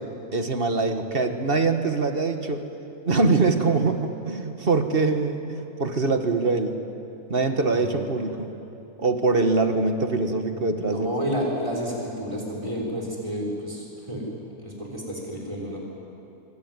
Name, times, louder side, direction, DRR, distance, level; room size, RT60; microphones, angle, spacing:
voice 1, 0.3-2.7 3.1-6.8 7.3-8.5 9.0-11.1, right 3 dB, 40° right, 7 dB, 1.6 m, -23 dB
voice 2, 10.8-14.2 14.6-15.8, equal, 20° right, -2 dB, 6.3 m, -30 dB
25.5 x 23.5 x 9.6 m, 2.9 s
omnidirectional pair, 1.5 m